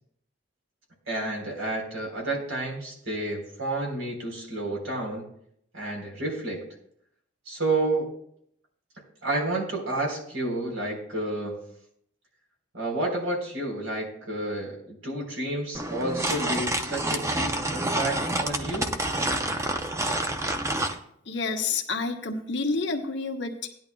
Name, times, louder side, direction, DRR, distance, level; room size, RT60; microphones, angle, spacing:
voice 1, 1.1-5.2 5.7-6.6 7.5-8.1 9.2-11.6 12.7-18.9, right 2 dB, 75° right, -1 dB, 4.0 m, -30 dB
sound 1, 15.7-21.0, right 1 dB, 15° right, 0.6 m, -28 dB
voice 2, 21.2-23.7, left 4 dB, 60° left, 2 dB, 1.2 m, -29 dB
17.0 x 11.0 x 2.3 m, 0.69 s
head